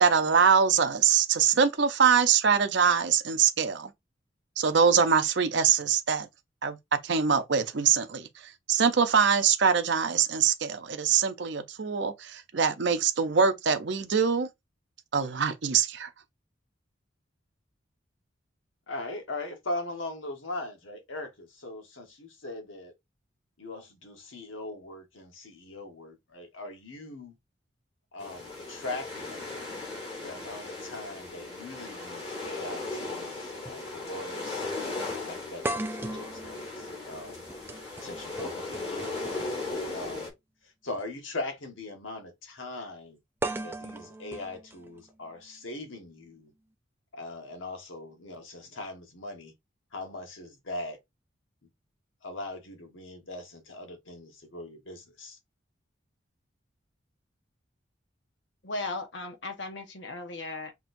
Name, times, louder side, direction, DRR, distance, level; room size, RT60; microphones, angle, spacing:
voice 1, 0.0-3.9 4.6-6.3 6.6-6.8 7.0-8.3 8.7-14.5 15.1-16.1, right 6 dB, 65° right, 0.6 m, -23 dB
voice 2, 18.9-22.9 23.6-27.4 28.1-29.4 30.2-34.7 35.2-37.4 38.0-39.2 39.9-40.3 40.6-43.2 43.6-46.5 47.1-49.5 49.9-51.0 52.2-55.4, left 2 dB, 85° left, 1.2 m, -40 dB
sound 1, 28.2-40.3, left 2 dB, 30° left, 2.2 m, -37 dB
sound 2, 33.7-33.8 34.2-34.3 35.6-39.7 40.9-41.0 43.4-45.4, right 1 dB, 10° right, 0.3 m, -37 dB
voice 3, 58.6-60.7, left 2 dB, 70° left, 1.1 m, -36 dB
5.9 x 2.9 x 2.6 m
head